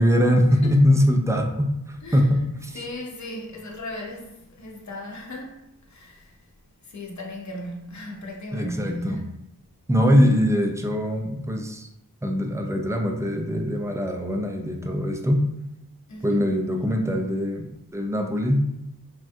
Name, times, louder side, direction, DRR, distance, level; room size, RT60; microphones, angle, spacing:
voice 1, 0.0-2.8 8.5-9.2 9.9-11.9 12.2-15.4 16.2-18.6, equal, 10° right, 0.3 m, -22 dB
voice 2, 2.7-6.5 6.8-9.3 16.1-16.5, left 1 dB, 50° left, 0.7 m, -36 dB
3.3 x 2.3 x 2.6 m
wide cardioid pair, 80°, 36 cm